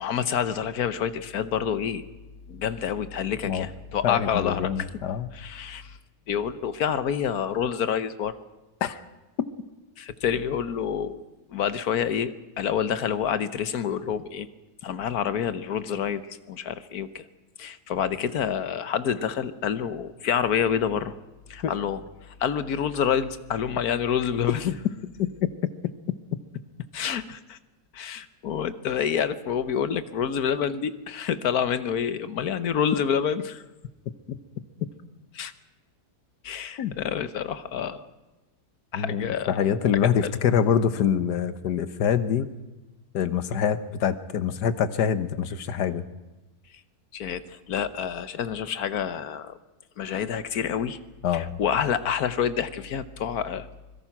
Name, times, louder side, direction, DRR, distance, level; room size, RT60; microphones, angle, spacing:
voice 1, 0.0-2.0 2.5-4.9 5.3-6.0 6.3-8.4 10.0-11.2 11.5-14.5 14.8-17.3 17.6-21.1 21.5-22.0 22.3-24.8 26.9-27.6 27.9-33.6 35.3-35.5 36.4-38.1 38.9-39.5 40.2-40.3 47.1-49.6 50.0-51.0 51.3-53.7, left 8 dB, 70° left, 13 dB, 1.5 m, -28 dB
voice 2, 4.0-5.3 8.8-9.0 9.4-9.5 21.6-21.7 34.3-34.4 36.8-36.9 38.9-42.5 43.1-46.0 51.2-51.5, left 8 dB, 90° left, 13 dB, 1.6 m, -25 dB
24.5 x 22.0 x 6.0 m, 1.1 s
omnidirectional pair, 1.7 m